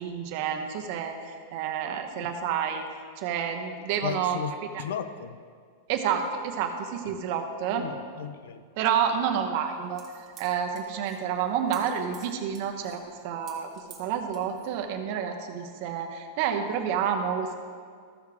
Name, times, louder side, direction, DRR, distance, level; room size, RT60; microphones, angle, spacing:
voice 1, 0.0-2.8 3.2-4.4 4.7-4.8 5.9-7.9 8.8-13.7 14.0-17.5, right 8 dB, 45° right, 4 dB, 0.9 m, -29 dB
voice 2, 4.0-4.5 4.8-5.4 7.7-8.6, left 8 dB, 80° left, 11 dB, 0.6 m, -35 dB
sound 1, 9.6-14.8, right 6 dB, 20° right, 1.5 m, -51 dB
14.0 x 6.6 x 3.6 m, 2.1 s
supercardioid pair, 165°, 0 cm